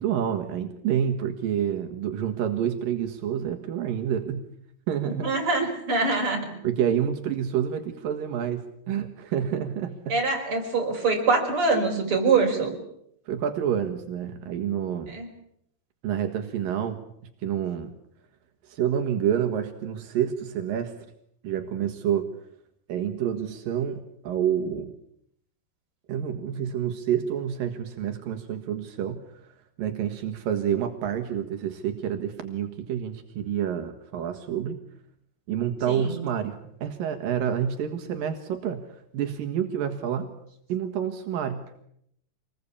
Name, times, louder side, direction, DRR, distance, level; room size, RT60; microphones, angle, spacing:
voice 1, 0.0-4.4 4.9-5.3 6.6-10.2 13.3-15.2 16.0-17.1 17.4-17.9 18.6-20.9 21.4-22.3 22.9-24.9 26.1-34.8 35.5-40.3 40.7-41.6, right 9 dB, 85° right, 5 dB, 3.4 m, -28 dB
voice 2, 5.1-6.4 10.1-12.7 15.1-15.3 35.9-36.1, right 3 dB, 40° right, 2 dB, 6.1 m, -24 dB
27.0 x 20.5 x 8.5 m, 0.74 s
omnidirectional pair, 3.9 m